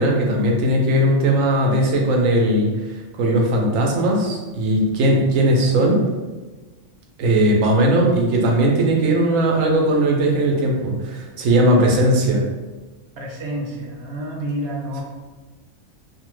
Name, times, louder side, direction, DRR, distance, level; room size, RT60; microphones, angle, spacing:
voice 1, 0.0-2.7 3.2-6.0 7.2-12.4, right 1 dB, 85° right, 0 dB, 1.0 m, -18 dB
voice 2, 13.2-15.0, right 1 dB, 55° right, -3 dB, 0.8 m, -29 dB
2.7 x 2.1 x 3.0 m, 1.2 s
omnidirectional pair, 1.3 m